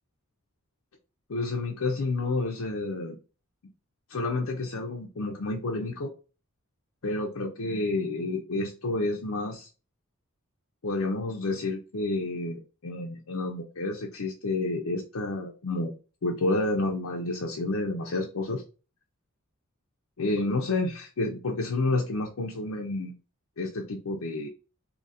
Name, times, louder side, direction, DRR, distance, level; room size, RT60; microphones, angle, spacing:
voice 1, 1.3-3.2 4.1-6.1 7.0-9.7 10.8-15.9 16.2-18.6 20.2-23.2 23.6-24.5, left 2 dB, 75° left, 1 dB, 0.6 m, -30 dB
2.8 x 2.5 x 4.1 m, 0.34 s
head